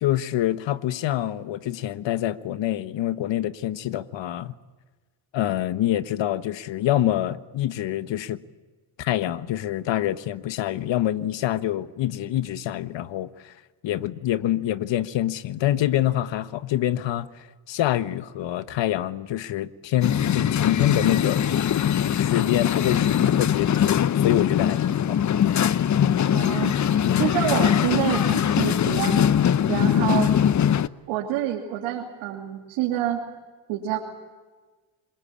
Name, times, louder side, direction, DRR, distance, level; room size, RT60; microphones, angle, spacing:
voice 1, 0.0-4.5 5.3-8.4 9.0-13.5 13.8-21.4 22.2-25.2 25.9-26.2 27.0-27.3, left 13 dB, 65° left, 13 dB, 1.4 m, -26 dB
Tren Ollantaytambo a Machu Picchu Cuzco Perú, 20.0-30.9, left 9 dB, 35° left, 0.8 m, -21 dB
voice 2, 26.3-26.7 27.2-29.4 29.7-30.3 31.1-33.2 33.7-34.0, right 12 dB, 85° right, -1 dB, 3.0 m, -27 dB
26.0 x 23.0 x 8.7 m, 1.3 s
supercardioid pair, 80°, 49 cm